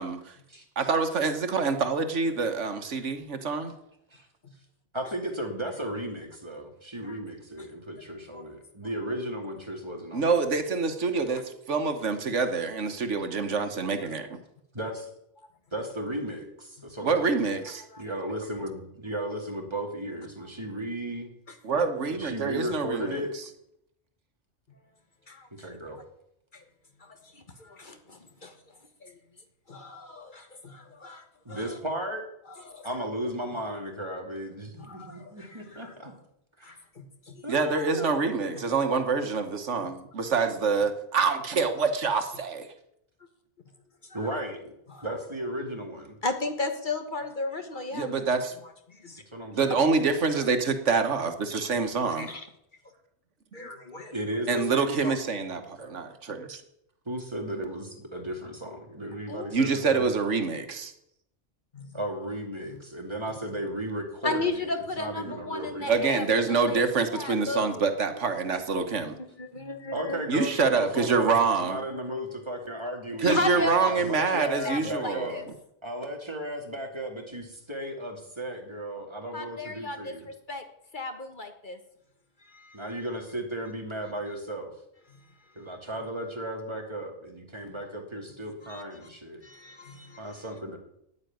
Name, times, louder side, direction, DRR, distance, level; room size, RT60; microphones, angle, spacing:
voice 1, 0.0-0.3 0.8-3.7 10.1-14.4 17.0-17.8 21.6-23.2 37.5-42.7 47.9-48.5 49.5-52.3 53.6-53.7 54.5-56.6 59.5-60.9 65.9-69.2 70.3-71.8 73.2-75.4, right 4 dB, 80° right, 8 dB, 1.6 m, -26 dB
voice 2, 4.9-10.4 14.7-15.1 15.7-17.5 18.0-21.3 22.1-23.3 25.5-26.0 31.4-32.2 32.8-36.1 36.6-36.8 37.4-38.1 44.1-44.7 45.0-46.1 49.3-49.8 54.1-55.1 55.8-56.0 57.1-60.1 61.9-66.0 69.9-75.4 75.8-80.3 82.7-84.7 85.6-89.4 90.2-90.8, right 1 dB, 25° right, 2 dB, 2.6 m, -35 dB
voice 3, 27.0-28.5 29.0-29.2 29.7-31.8 32.5-32.9 34.8-35.9 36.6-37.4 38.5-38.7 44.1-44.4 44.9-45.1 46.2-48.1 48.9-49.2 49.7-49.8 52.0-52.5 53.5-54.1 59.3-59.6 61.7-62.0 62.7-62.8 64.2-66.8 67.1-68.1 68.7-70.8 71.3-71.4 71.9-72.2 73.2-73.9 74.2-75.5 79.3-80.6 80.9-81.8 82.4-82.9 85.1-85.2 88.6-89.1 89.4-90.4, left 2 dB, 45° left, 7 dB, 1.4 m, -36 dB
9.8 x 9.7 x 9.3 m, 0.78 s
omnidirectional pair, 1.2 m